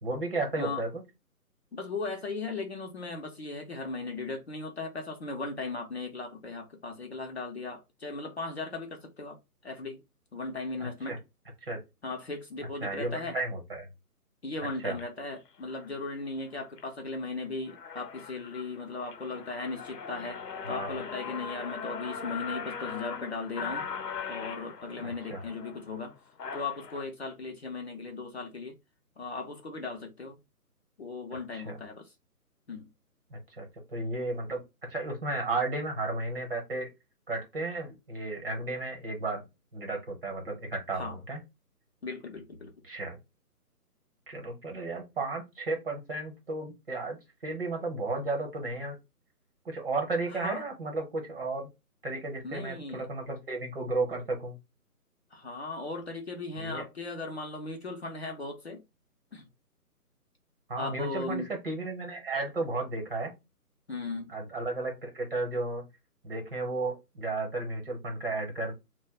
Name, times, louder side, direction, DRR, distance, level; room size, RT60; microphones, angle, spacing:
voice 1, 0.0-1.0 10.8-11.2 11.6-11.8 12.8-13.9 14.8-15.0 20.7-20.9 25.0-25.4 31.5-31.8 33.3-36.9 37.3-39.4 39.7-41.4 42.8-43.2 44.3-47.2 47.4-49.0 49.6-51.7 52.0-54.6 56.6-56.8 60.7-63.3 64.3-65.8 66.2-68.7, right 2 dB, 40° right, 1.0 m, -33 dB
voice 2, 1.7-9.4 9.6-10.0 10.3-11.2 12.0-13.4 14.4-20.4 20.7-23.9 24.3-26.1 26.5-28.8 29.2-30.4 31.0-32.1 32.7-32.9 40.9-41.2 42.0-42.7 50.3-50.6 52.4-53.0 55.3-58.8 59.3-59.5 60.8-61.5 63.9-64.3, left 3 dB, 45° left, 0.6 m, -37 dB
sound 1, 14.8-15.0 15.7-15.9 16.4-16.9 17.3-17.4 17.6-27.0, left 6 dB, 90° left, 0.7 m, -40 dB
2.5 x 2.2 x 3.6 m
hypercardioid pair, 160°, 46 cm